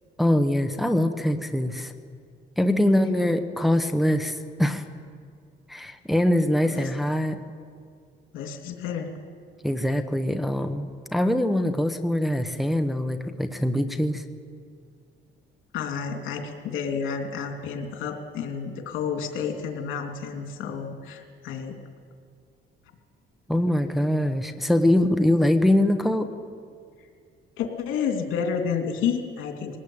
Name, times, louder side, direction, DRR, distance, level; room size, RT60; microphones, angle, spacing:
voice 1, 0.2-1.9 2.6-4.8 5.7-7.4 9.6-14.2 23.5-26.3, left 1 dB, ahead, 6 dB, 1.2 m, -23 dB
voice 2, 2.9-3.4 6.6-6.9 8.3-9.1 15.7-21.8 27.0-27.1 27.6-29.8, left 6 dB, 85° left, 3 dB, 3.1 m, -30 dB
21.5 x 19.0 x 8.8 m, 2.2 s
cardioid pair, 115°, 20 cm